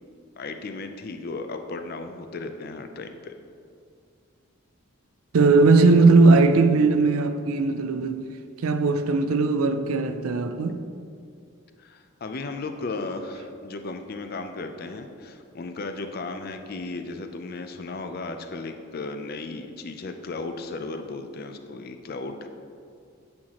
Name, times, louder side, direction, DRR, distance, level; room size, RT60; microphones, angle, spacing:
voice 1, 0.4-3.3 11.8-22.5, left 3 dB, 45° left, 0.4 m, -35 dB
voice 2, 5.3-8.3 8.6-10.8, right 3 dB, 85° right, 0.4 m, -19 dB
8.6 x 5.7 x 3.0 m
head